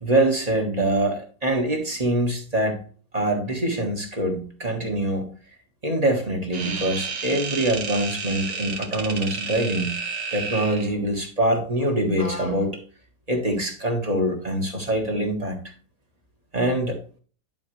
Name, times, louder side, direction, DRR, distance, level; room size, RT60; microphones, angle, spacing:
voice 1, 0.0-2.8 3.1-5.3 5.8-10.0 10.3-12.8 13.3-15.6 16.5-17.0, right 1 dB, 25° right, 2 dB, 1.5 m, -24 dB
sound 1, 6.5-10.9, right 5 dB, 60° right, 1.4 m, -31 dB
11.0 x 4.8 x 3.2 m, 0.40 s
omnidirectional pair, 1.7 m